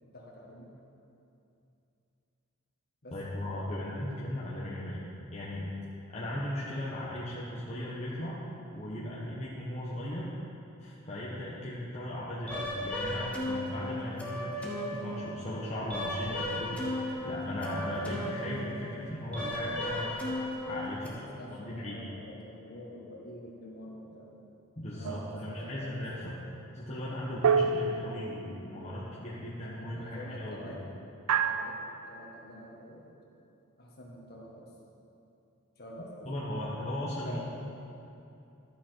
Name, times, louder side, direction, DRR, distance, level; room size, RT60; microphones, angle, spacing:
voice 1, 0.1-0.7 3.0-3.2 21.0-24.5 24.9-26.4 29.6-30.9 31.4-33.1 33.8-34.7 35.8-36.7 37.2-37.4, left 1 dB, 50° left, -3 dB, 1.7 m, -47 dB
voice 2, 3.1-5.7 6.1-8.4 8.7-10.3 10.8-20.2 20.7-21.1 21.5-22.0 24.8-26.4 26.7-30.8 36.0-37.4, left 1 dB, 30° left, -7 dB, 1.1 m, -37 dB
sound 1, 12.5-21.1, left 1 dB, 5° left, 1.1 m, -36 dB
sound 2, 25.0-25.7 27.4-28.8 31.3-32.1, right 6 dB, 85° right, 0.4 m, -29 dB
11.5 x 7.2 x 4.5 m, 2.7 s
head